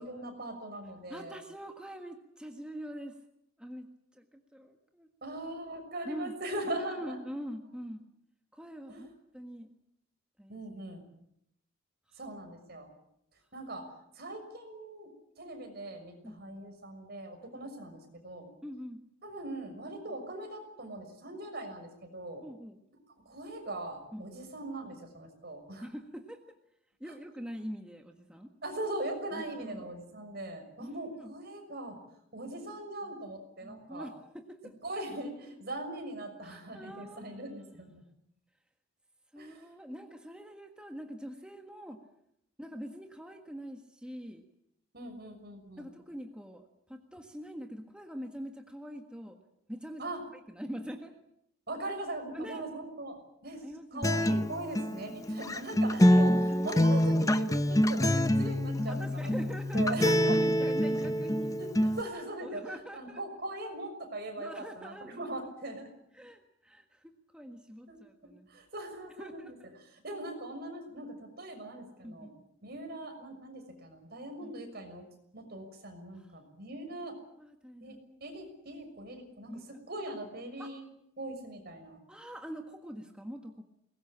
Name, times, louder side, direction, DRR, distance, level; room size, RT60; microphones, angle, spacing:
voice 1, 0.0-1.4 5.2-7.2 8.9-9.1 10.5-11.0 12.2-12.9 13.5-18.5 19.2-22.4 23.2-25.9 28.6-32.0 32.3-34.1 34.8-38.0 39.4-39.7 44.9-45.8 50.0-50.2 51.7-53.6 53.9-56.3 56.6-60.4 61.6-65.9 67.9-68.0 68.5-72.3 72.6-75.1 75.3-77.2 77.8-80.8 81.2-82.0, right 1 dB, 55° right, 5 dB, 6.3 m, -40 dB
voice 2, 1.1-3.2 3.6-3.9 4.1-5.1 6.0-6.3 6.7-8.0 8.5-9.1 9.3-9.7 10.4-10.6 12.1-12.2 16.2-16.4 17.5-17.7 18.6-19.0 22.4-22.8 24.1-24.4 25.8-26.5 27.0-28.5 29.3-29.9 30.8-31.3 33.0-33.1 33.6-34.7 36.4-37.4 39.3-42.0 42.6-44.4 45.8-49.4 49.7-50.1 50.5-51.1 52.3-52.7 53.6-54.2 56.0-56.8 58.2-59.8 60.3-61.6 62.4-63.2 64.4-65.4 65.7-65.8 66.1-68.5 69.2-69.7 72.0-72.3 74.4-74.7 76.1-76.3 77.4-78.0 79.5-79.6 80.6-80.7 82.1-83.6, equal, 5° right, 3 dB, 1.5 m, -44 dB
Acoustic guitar, 54.0-62.0, equal, 15° left, 0.8 m, -26 dB
23.0 x 20.0 x 8.8 m, 0.77 s
head